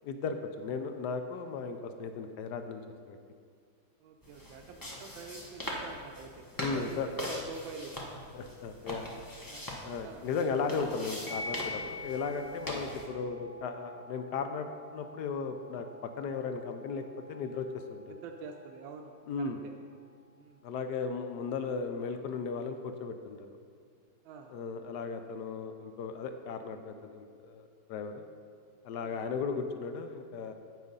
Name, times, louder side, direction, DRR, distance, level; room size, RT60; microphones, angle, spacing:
voice 1, 0.0-2.8 3.1-3.2 6.6-7.1 8.3-9.3 9.8-18.2 19.3-19.6 20.6-23.5 24.5-28.2 28.8-30.5, left 5 dB, 70° left, 7 dB, 1.1 m, -36 dB
voice 2, 4.0-6.5 6.7-7.9 9.5-9.6 10.0-10.3 18.1-19.1 19.4-19.7 20.4-20.6 24.2-24.5 29.0-29.2, right 5 dB, 80° right, 3 dB, 1.4 m, -46 dB
sound 1, 4.2-13.1, left 1 dB, 20° left, 0.6 m, -42 dB
sound 2, 11.3-20.3, left 2 dB, 50° left, 1.7 m, -47 dB
8.5 x 6.3 x 5.3 m, 2.1 s
omnidirectional pair, 2.1 m